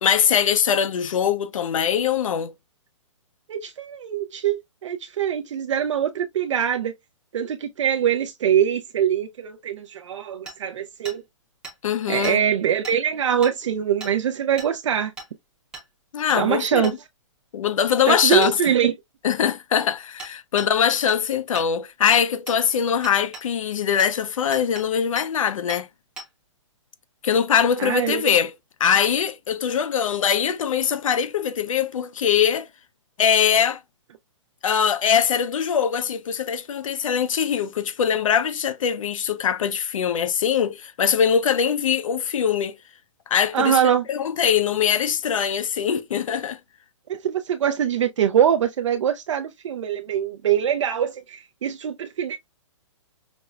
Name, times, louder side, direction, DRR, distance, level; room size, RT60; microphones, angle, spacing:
voice 1, 0.0-2.5 11.8-12.4 16.1-16.9 17.5-18.6 19.2-25.9 27.2-28.5 28.8-32.7 33.2-33.8 34.6-42.8 43.3-43.8 44.1-46.6, left 8 dB, 85° left, 0.6 m, -22 dB
voice 2, 3.5-6.9 7.3-11.2 12.1-15.1 16.4-16.9 18.1-18.9 27.8-28.3 43.5-44.0 47.1-52.4, right 9 dB, 70° right, 0.4 m, -23 dB
Hammer, 10.5-10.6 11.0-11.2 11.6-11.7 12.2-12.4 12.8-13.0 13.4-13.5 14.0-14.1 14.6-14.7 15.2-15.3 15.7-15.9 16.3-16.4 16.8-17.0 18.4-18.5 20.2-20.3 20.6-20.7 21.1-21.2 21.5-21.7 22.1-22.6 23.0-23.5 24.0-24.1 24.5-24.8 25.2-25.3 25.7-25.8 26.2-26.3, right 2 dB, 5° right, 0.6 m, -37 dB
5.1 x 2.1 x 2.2 m
hypercardioid pair, 175°, 17 cm